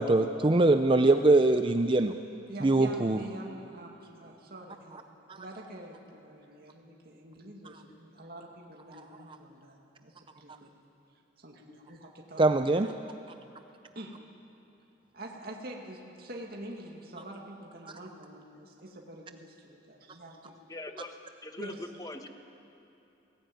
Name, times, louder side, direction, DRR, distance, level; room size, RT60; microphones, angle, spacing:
voice 1, 0.0-2.1 2.6-3.2 5.3-5.4 12.4-12.9, right 2 dB, 25° right, 8 dB, 0.5 m, -23 dB
voice 2, 2.5-5.1 5.4-10.7 11.4-12.9 13.9-14.2 15.1-20.5 21.6-21.8, right 1 dB, 55° right, 0 dB, 2.3 m, -46 dB
voice 3, 20.7-21.2 21.4-22.3, left 1 dB, 20° left, 6 dB, 1.3 m, -41 dB
21.5 x 18.0 x 9.2 m, 3.0 s
head